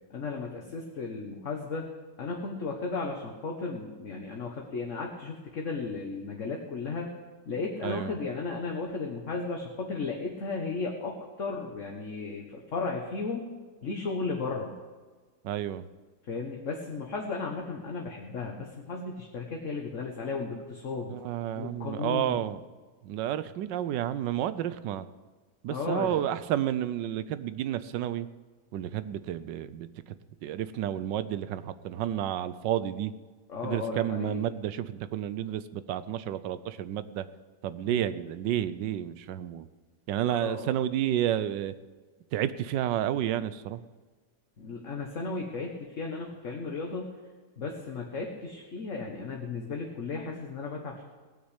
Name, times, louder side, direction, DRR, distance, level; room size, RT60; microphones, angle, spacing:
voice 1, 0.1-1.9 2.2-7.1 7.5-13.5 13.8-14.7 16.3-21.1 21.5-22.4 25.7-26.2 33.5-34.5 37.9-38.0 40.4-40.6 44.6-47.1 47.6-51.0, left 4 dB, 45° left, 0 dB, 1.5 m, -35 dB
voice 2, 7.8-8.1 15.4-15.8 21.1-22.6 23.0-25.1 25.6-28.3 28.7-29.9 30.4-33.1 33.6-37.2 37.6-39.6 40.1-41.7 42.3-43.8, right 11 dB, 80° right, 14 dB, 1.3 m, -31 dB
18.5 x 6.4 x 8.1 m, 1.4 s
omnidirectional pair, 2.0 m